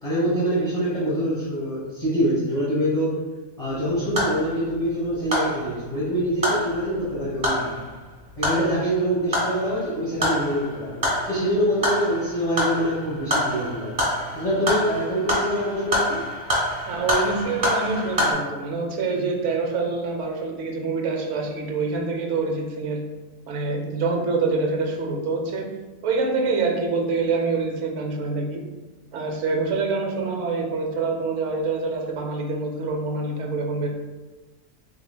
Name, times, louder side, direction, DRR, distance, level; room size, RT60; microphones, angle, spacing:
voice 1, 0.0-3.2 3.6-7.8 8.4-13.9 14.3-16.2, equal, 30° left, -8 dB, 1.1 m, -25 dB
sound 1, 3.6-18.3, equal, 30° right, 1.5 m, -27 dB
voice 2, 16.8-23.1 23.5-25.6 26.0-28.6 29.1-33.9, right 3 dB, 70° right, 3 dB, 1.0 m, -26 dB
6.9 x 2.5 x 2.2 m, 1.2 s
omnidirectional pair, 1.4 m